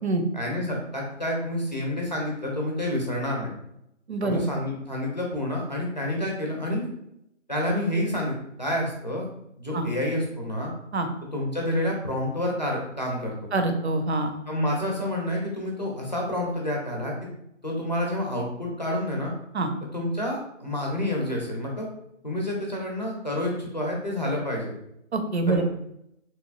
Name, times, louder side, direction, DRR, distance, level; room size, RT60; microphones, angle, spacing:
voice 1, 0.3-3.5 4.2-6.9 7.5-9.3 9.6-10.7 11.3-13.3 14.5-17.1 17.6-19.3 19.9-21.9 22.2-24.7 25.5-25.6, left 1 dB, 35° left, -2 dB, 0.6 m, -28 dB
voice 2, 4.1-4.4 9.7-9.9 10.9-11.1 13.5-14.3 19.5-19.7 25.1-25.6, right 2 dB, 60° right, 6 dB, 0.5 m, -25 dB
3.3 x 3.1 x 2.3 m, 0.79 s
figure-of-eight pair, 180°, 37 cm